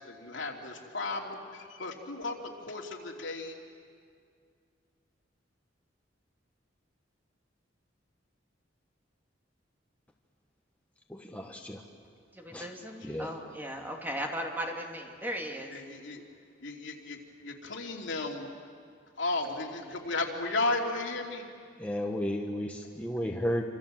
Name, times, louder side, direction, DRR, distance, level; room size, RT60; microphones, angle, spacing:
voice 1, 0.0-3.5 13.0-13.5 15.7-16.2 16.6-18.5 19.2-21.5, left 2 dB, 75° left, 1 dB, 3.0 m, -35 dB
voice 2, 11.1-11.8 12.5-12.7 13.0-13.3 21.8-23.6, equal, 10° left, 1 dB, 1.4 m, -33 dB
voice 3, 12.3-15.7, equal, 10° right, 1 dB, 2.5 m, -37 dB
28.0 x 26.0 x 7.6 m, 2.2 s
head